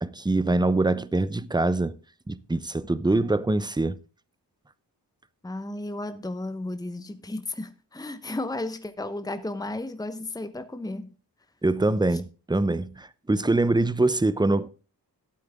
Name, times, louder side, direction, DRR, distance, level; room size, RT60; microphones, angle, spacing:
voice 1, 0.0-2.0 2.3-4.0 11.6-14.7, right 2 dB, 10° right, 0.6 m, -24 dB
voice 2, 5.4-11.1 12.1-12.2, left 2 dB, 10° left, 1.0 m, -34 dB
12.5 x 8.2 x 3.6 m
cardioid pair, 45°, 42 cm